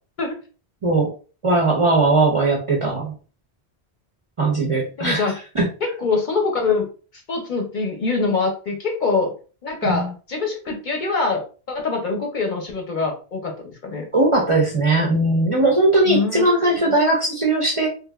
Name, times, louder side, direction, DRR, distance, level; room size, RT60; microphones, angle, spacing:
voice 1, 1.4-3.1 4.4-5.7 9.8-10.1 14.1-17.9, right 2 dB, 40° right, -2 dB, 0.5 m, -19 dB
voice 2, 5.0-5.3 5.8-6.9 7.3-9.3 9.6-11.4 11.7-14.1 16.1-16.9, left 4 dB, 55° left, 1 dB, 0.7 m, -24 dB
3.1 x 2.5 x 2.2 m, 0.36 s
omnidirectional pair, 1.1 m